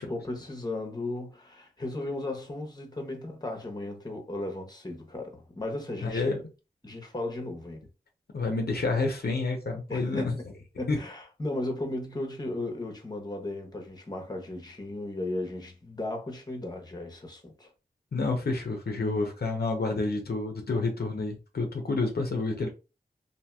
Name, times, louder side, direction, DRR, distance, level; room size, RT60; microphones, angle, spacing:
voice 1, 0.0-6.3 6.8-7.8 9.9-10.4 10.8-17.7, left 2 dB, 25° left, 0.9 m, -36 dB
voice 2, 6.0-6.4 8.3-10.4 10.9-11.0 18.1-22.7, left 3 dB, 70° left, 0.6 m, -29 dB
2.8 x 2.7 x 2.2 m
wide cardioid pair, 45°, 17 cm